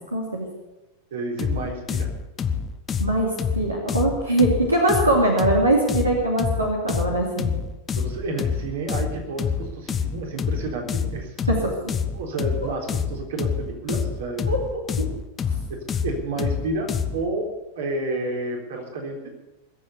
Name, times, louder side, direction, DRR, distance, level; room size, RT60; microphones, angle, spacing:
voice 1, 0.1-0.5 3.0-7.5 11.5-11.7 12.6-12.7 14.5-14.8, right 1 dB, 80° right, -1 dB, 2.7 m, -22 dB
voice 2, 1.1-2.1 8.0-11.8 12.1-14.5 15.7-17.5 17.8-19.3, right 2 dB, 60° right, 1 dB, 3.8 m, -30 dB
sound 1, 1.4-17.3, left 6 dB, 20° left, 1.0 m, -27 dB
21.0 x 7.8 x 8.3 m, 1.0 s
figure-of-eight pair, 90°, 0 cm